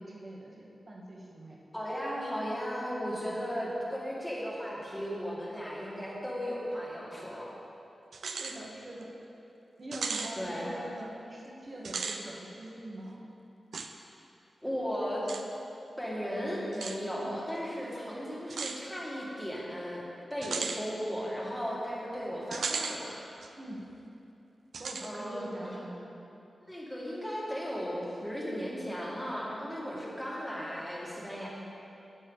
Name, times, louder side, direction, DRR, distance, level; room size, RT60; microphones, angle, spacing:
voice 1, 0.0-1.6 3.5-3.7 8.2-9.1 9.8-13.2 17.1-17.3 20.5-20.7 23.6-23.8 24.8-26.1, right 1 dB, 35° right, -3 dB, 1.6 m, -43 dB
voice 2, 1.7-7.5 10.4-10.7 14.6-15.2 16.0-20.0 20.3-23.1 25.0-25.7 26.7-31.5, equal, 5° left, -5 dB, 1.9 m, -36 dB
sound 1, 8.1-8.6 9.0-9.1 9.9-10.3 11.8-12.2 13.7-13.9 15.3-15.4 16.7-17.0 18.5-18.8 20.4-20.8 22.5-23.0 23.4-23.5 24.7-25.1, right 4 dB, 75° right, 0.6 m, -35 dB
11.0 x 8.9 x 4.0 m, 2.8 s
wide cardioid pair, 150°, 0 cm